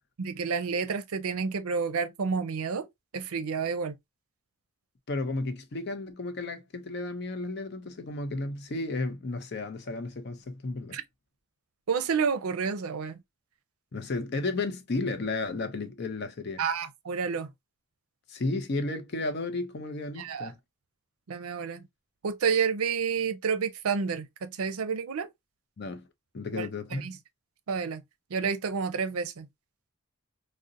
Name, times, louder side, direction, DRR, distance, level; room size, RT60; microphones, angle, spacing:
voice 1, 0.2-2.9 3.1-3.9 10.9-11.0 11.9-13.2 16.6-17.5 20.2-20.5 21.3-21.8 22.2-25.3 26.5-27.2 27.7-28.0 28.3-29.5, right 5 dB, 80° right, 0.5 m, -30 dB
voice 2, 5.1-11.0 13.9-16.6 18.3-20.6 25.8-26.1 26.3-27.1, left 2 dB, 50° left, 0.5 m, -33 dB
3.8 x 2.1 x 2.5 m
head